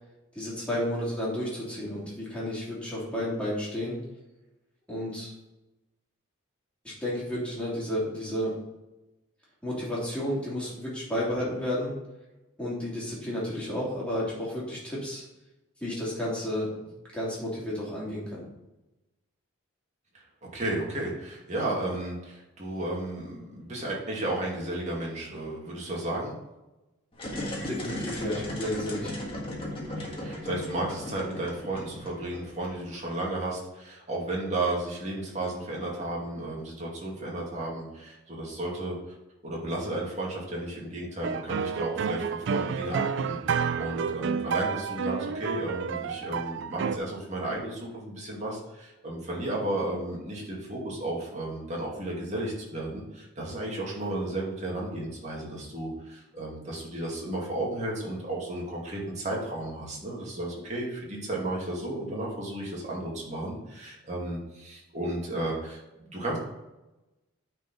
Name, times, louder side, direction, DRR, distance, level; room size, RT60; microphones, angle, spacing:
voice 1, 0.3-4.0 4.9-5.3 6.8-8.5 9.6-11.9 12.6-15.2 15.8-16.9 17.1-18.4 27.7-29.1, left 1 dB, 5° left, -7 dB, 3.0 m, -32 dB
voice 2, 20.4-26.4 29.8-38.9 39.4-66.4, right 1 dB, 35° right, -4 dB, 2.3 m, -33 dB
sound 1, 27.1-33.0, left 1 dB, 25° left, 1.6 m, -36 dB
sound 2, 41.2-47.0, right 6 dB, 55° right, 0.3 m, -30 dB
9.3 x 4.6 x 4.3 m, 1.0 s
head